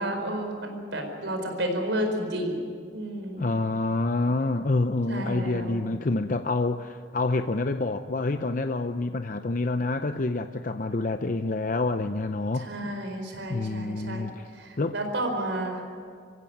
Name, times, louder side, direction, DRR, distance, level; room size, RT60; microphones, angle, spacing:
voice 1, 0.0-2.6 2.9-3.4 5.1-5.8 12.5-14.3 14.6-15.8, right 1 dB, 75° right, 4 dB, 4.6 m, -31 dB
voice 2, 3.4-12.7 13.5-14.5 14.8-14.9, left 2 dB, 45° left, 8 dB, 0.6 m, -27 dB
26.0 x 16.0 x 9.4 m, 2.1 s
head